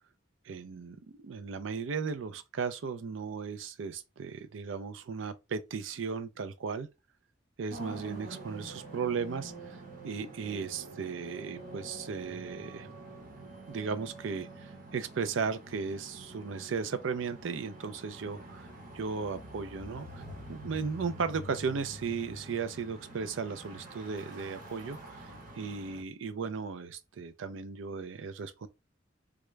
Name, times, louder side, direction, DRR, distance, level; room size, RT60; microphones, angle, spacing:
voice 1, 0.5-6.9 7.6-9.8 10.0-12.9 13.7-18.7 18.9-20.2 20.5-25.3 25.6-28.7, right 5 dB, 85° right, 0.4 m, -36 dB
sound 1, 7.7-26.0, right 1 dB, 50° right, 0.9 m, -47 dB
3.5 x 2.2 x 3.2 m
head